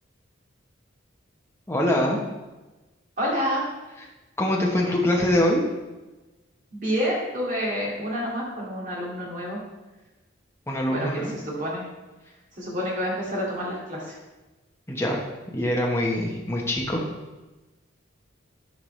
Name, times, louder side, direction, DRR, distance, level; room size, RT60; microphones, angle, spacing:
voice 1, 1.7-2.2 4.4-5.6 10.7-11.3 14.9-15.2 15.5-17.1, left 1 dB, 15° left, -2 dB, 1.1 m, -23 dB
voice 2, 3.2-3.6 6.7-9.6 10.9-11.9 12.5-14.2, equal, 40° right, -4 dB, 2.4 m, -28 dB
11.5 x 4.8 x 3.3 m, 1.1 s
head